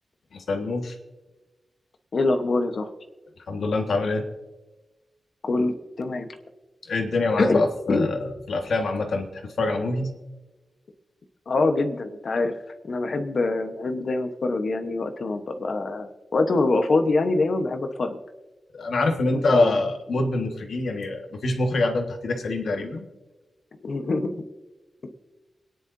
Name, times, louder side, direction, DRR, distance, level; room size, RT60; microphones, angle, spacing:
voice 1, 0.3-1.0 3.5-4.2 6.8-10.1 18.7-23.1, left 2 dB, 65° left, 4 dB, 1.6 m, -25 dB
voice 2, 2.1-2.9 5.4-6.3 7.4-7.6 7.9-8.1 11.5-12.5 12.8-18.2 19.3-19.8 23.8-24.4, left 3 dB, 45° left, 7 dB, 1.1 m, -24 dB
27.5 x 10.5 x 2.7 m, 1.2 s
wide cardioid pair, 180°, 0 cm